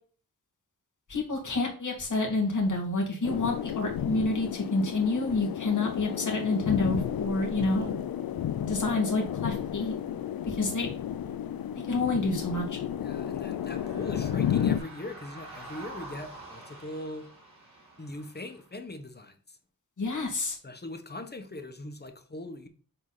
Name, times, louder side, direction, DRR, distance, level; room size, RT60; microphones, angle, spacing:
voice 1, 1.1-7.9 8.6-9.9 10.4-10.9 11.9-12.8 20.0-20.6, left 3 dB, 60° left, 0 dB, 2.2 m, -28 dB
sound 1, 3.2-14.8, left 9 dB, 90° left, 0.5 m, -32 dB
voice 2, 13.0-17.3 18.0-19.4 20.6-22.7, left 1 dB, 30° left, 7 dB, 1.1 m, -40 dB
sound 2, 13.5-18.7, right 2 dB, 50° right, 3.3 m, -47 dB
7.7 x 3.9 x 4.0 m, 0.41 s
wide cardioid pair, 75°, 35 cm